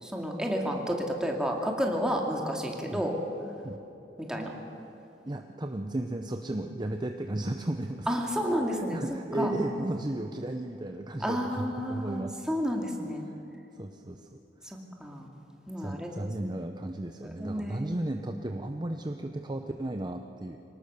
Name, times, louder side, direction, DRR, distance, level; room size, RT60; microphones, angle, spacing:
voice 1, 0.0-3.1 4.3-4.5 8.1-9.5 11.2-13.3 15.0-15.3 15.7-16.1 16.4-16.6 17.4-18.0, equal, 5° right, 0 dB, 2.4 m, -31 dB
voice 2, 5.2-8.1 8.7-12.4 13.3-13.4 13.7-14.4 14.7-14.8 15.8-20.6, right 1 dB, 25° right, 5 dB, 0.7 m, -34 dB
24.5 x 18.5 x 6.8 m, 3.0 s
head